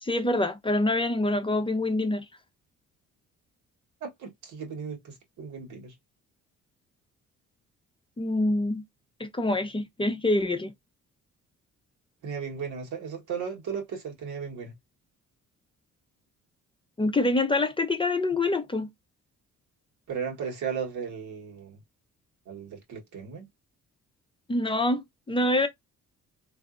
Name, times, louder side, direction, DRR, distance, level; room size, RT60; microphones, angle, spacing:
voice 1, 0.0-2.2 8.2-8.8 9.2-10.7 17.0-18.9 24.5-25.7, left 2 dB, 15° left, 0.6 m, -26 dB
voice 2, 4.0-5.9 12.2-14.7 20.1-21.8 22.5-23.5, right 6 dB, 80° right, 1.4 m, -36 dB
3.5 x 2.6 x 2.4 m
cardioid pair, 90°, 30 cm